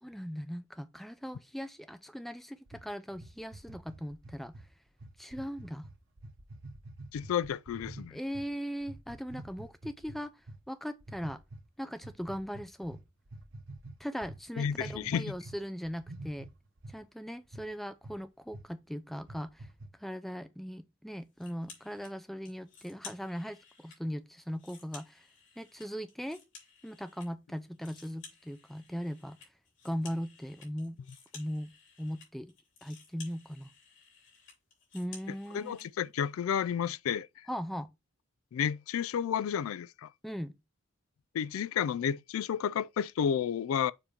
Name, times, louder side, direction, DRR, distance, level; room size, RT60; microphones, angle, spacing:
voice 1, 0.0-4.6 5.2-5.9 8.1-10.3 10.7-11.4 11.8-13.0 14.0-16.5 16.9-19.7 20.0-25.3 25.6-26.4 26.8-29.4 29.8-31.0 31.3-31.7 32.0-32.5 32.8-33.7 34.9-35.8 37.5-37.9 40.2-40.6, equal, ahead, 0.4 m, -39 dB
sound 1, 2.7-8.5 8.8-10.6 11.0-11.6 12.0-15.6 15.8-17.0 17.5-17.7 18.0-18.2 18.5-18.7 19.1-19.9, right 2 dB, 65° right, 1.0 m, -47 dB
voice 2, 7.1-8.2 14.6-15.4 35.5-37.3 38.5-40.1 41.3-43.9, left 8 dB, 90° left, 0.3 m, -31 dB
sound 2, 21.4-22.1 22.4-24.0 24.4-27.3 27.6-35.9, left 5 dB, 60° left, 2.8 m, -54 dB
7.0 x 2.9 x 5.1 m
head